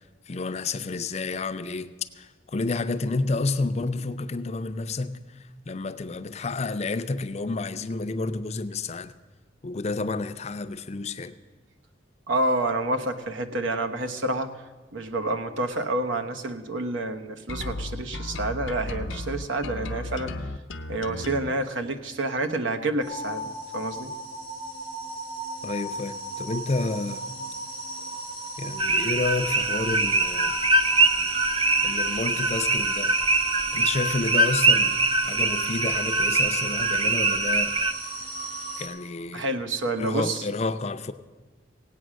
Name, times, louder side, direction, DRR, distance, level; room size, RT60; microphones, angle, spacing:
voice 1, 0.3-9.1 9.6-11.3 25.6-27.3 28.6-30.6 31.8-33.2 33.7-37.9 38.8-39.5 40.0-41.1, left 3 dB, 35° left, 0.5 m, -30 dB
voice 2, 12.3-14.5 14.9-20.3 20.9-23.4 23.7-24.1 39.3-40.4, right 2 dB, 85° right, 1.0 m, -28 dB
sound 1, 17.5-21.5, left 2 dB, 85° left, 0.7 m, -34 dB
sound 2, 23.0-38.9, right 1 dB, 50° right, 2.7 m, -35 dB
sound 3, 28.8-37.9, right 3 dB, 25° right, 0.5 m, -23 dB
17.0 x 8.6 x 6.3 m
head